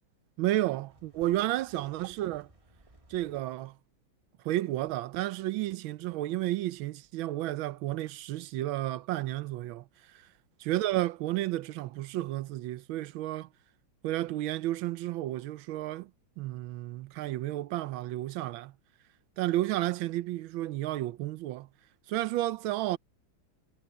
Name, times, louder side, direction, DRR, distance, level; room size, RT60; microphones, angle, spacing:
voice 1, 0.4-2.5 3.1-3.7 4.4-9.8 10.1-10.2 10.7-13.5 14.0-16.1 16.4-18.7 19.4-21.7 22.1-23.0, right 15 dB, 80° right, 1.4 m, -32 dB
Foot Steps, 0.9-3.4, right 1 dB, 15° right, 1.9 m, -60 dB
omnidirectional pair, 2.3 m